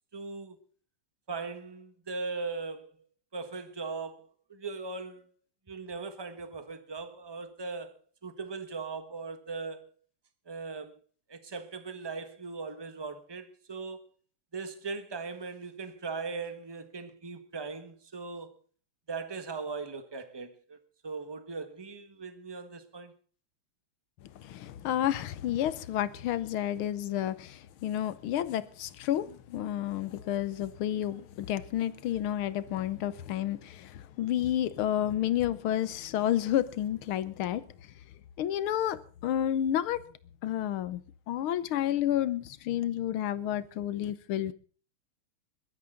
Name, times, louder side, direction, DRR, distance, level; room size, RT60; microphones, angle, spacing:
voice 1, 0.1-0.6 1.3-2.9 3.3-5.3 5.7-8.0 8.2-9.8 10.5-11.0 11.3-14.1 14.5-18.5 19.1-20.8 21.0-23.1, right 4 dB, 15° right, 1.1 m, -39 dB
voice 2, 24.4-37.6 38.4-40.0 40.4-41.0 41.3-44.5, left 11 dB, 75° left, 1.7 m, -30 dB
22.0 x 12.5 x 3.9 m
omnidirectional pair, 2.4 m